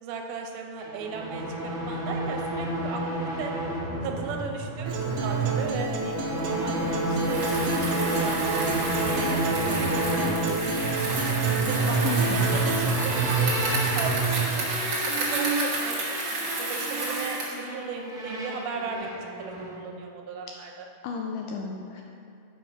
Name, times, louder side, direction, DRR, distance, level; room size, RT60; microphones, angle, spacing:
voice 1, 0.0-3.5 4.0-6.2 6.5-11.1 11.6-16.0 16.6-19.1 19.4-20.9, right 5 dB, 90° right, 2 dB, 2.6 m, -37 dB
sound 1, 0.8-19.8, right 2 dB, 5° right, 0.3 m, -29 dB
Acoustic guitar, 4.9-12.9, right 3 dB, 70° right, 2.4 m, -31 dB
Bicycle, 7.1-17.6, right 2 dB, 55° right, 1.2 m, -31 dB
voice 2, 12.0-12.5 21.0-22.0, left 5 dB, 80° left, 1 dB, 1.9 m, -33 dB
7.8 x 5.8 x 5.6 m, 2.6 s
omnidirectional pair, 4.3 m